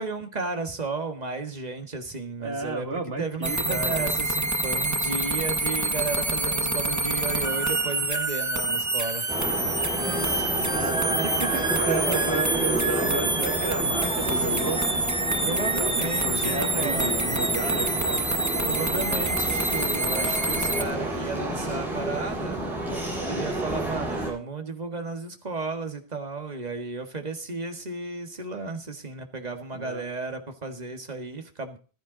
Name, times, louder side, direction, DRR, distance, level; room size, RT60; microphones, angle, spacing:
voice 1, 0.0-9.3 10.0-11.6 15.4-17.4 18.6-22.6 23.2-31.8, right 3 dB, 40° right, 5 dB, 1.9 m, -34 dB
voice 2, 2.4-4.1 10.7-14.9 15.8-18.3 29.7-30.0, right 3 dB, 70° right, 4 dB, 2.5 m, -33 dB
sound 1, 3.4-20.8, right 2 dB, 15° right, 1.1 m, -27 dB
sound 2, 9.3-24.3, right 1 dB, ahead, 8.0 m, -30 dB
15.0 x 12.0 x 4.0 m, 0.38 s
omnidirectional pair, 1.1 m